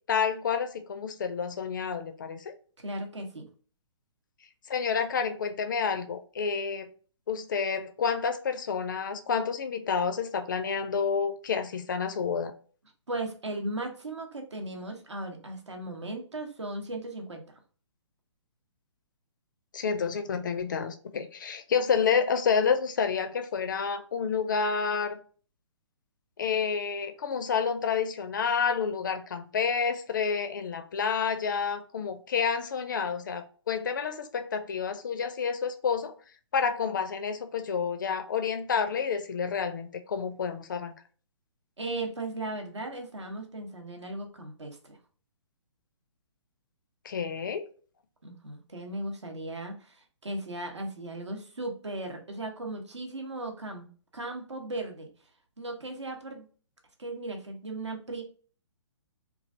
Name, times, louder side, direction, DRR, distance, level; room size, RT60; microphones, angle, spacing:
voice 1, 0.1-2.5 4.7-6.9 7.3-12.5 19.7-25.2 26.4-36.1 36.5-40.9 47.0-47.6, left 6 dB, 40° left, 0.4 m, -29 dB
voice 2, 2.8-3.5 13.1-17.4 41.8-45.0 48.2-55.1 55.6-56.5 57.0-58.2, right 2 dB, 70° right, 0.8 m, -37 dB
3.1 x 2.4 x 2.5 m
figure-of-eight pair, 130°, 15 cm